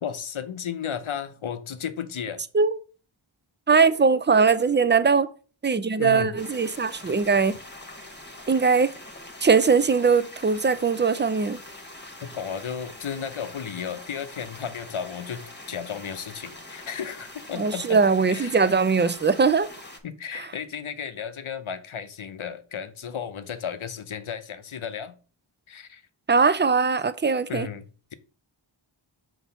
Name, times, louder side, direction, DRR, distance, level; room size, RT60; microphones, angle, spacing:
voice 1, 0.0-2.4 6.0-6.3 7.0-7.1 12.2-18.0 18.3-18.7 20.0-25.2 25.7-26.0 27.5-28.1, left 7 dB, 75° left, 0.7 m, -34 dB
voice 2, 3.7-5.3 5.6-7.6 8.5-8.9 9.4-11.6 17.6-19.7 20.4-20.5 26.3-27.7, right 5 dB, 25° right, 0.4 m, -21 dB
sound 1, 6.4-20.0, left 1 dB, 20° left, 1.1 m, -44 dB
5.7 x 3.0 x 5.5 m
wide cardioid pair, 55°, 49 cm